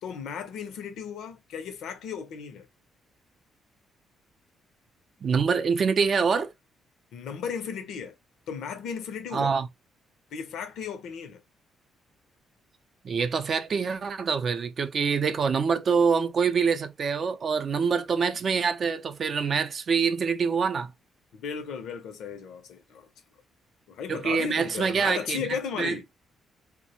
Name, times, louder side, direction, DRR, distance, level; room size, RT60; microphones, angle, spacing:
voice 1, 0.0-2.7 7.1-8.2 8.5-9.6 10.3-11.4 21.3-23.1 23.9-26.1, left 6 dB, 80° left, 0.5 m, -35 dB
voice 2, 5.2-6.5 9.3-9.7 13.0-20.9 24.1-25.4 25.8-26.0, right 5 dB, 50° right, 0.4 m, -25 dB
2.4 x 2.0 x 2.8 m
cardioid pair, 90°, 0 cm